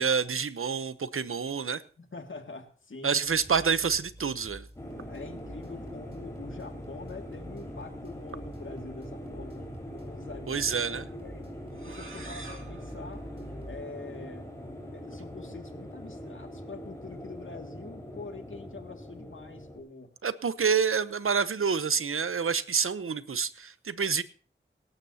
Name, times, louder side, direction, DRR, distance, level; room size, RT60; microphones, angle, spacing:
voice 1, 0.0-1.8 3.0-4.7 10.5-11.1 20.2-24.2, right 6 dB, 90° right, 14 dB, 0.8 m, -28 dB
voice 2, 2.0-3.2 5.1-11.5 11.8-13.3 13.6-14.5 14.9-20.1, left 3 dB, 70° left, 5 dB, 2.2 m, -45 dB
sound 1, 3.2-13.8, right 1 dB, 30° right, 5.7 m, -48 dB
sound 2, 4.8-19.8, equal, 15° left, 4.8 m, -42 dB
sound 3, 11.7-14.3, right 3 dB, 75° right, 2.3 m, -48 dB
24.5 x 12.0 x 2.8 m, 0.40 s
wide cardioid pair, 80°, 21 cm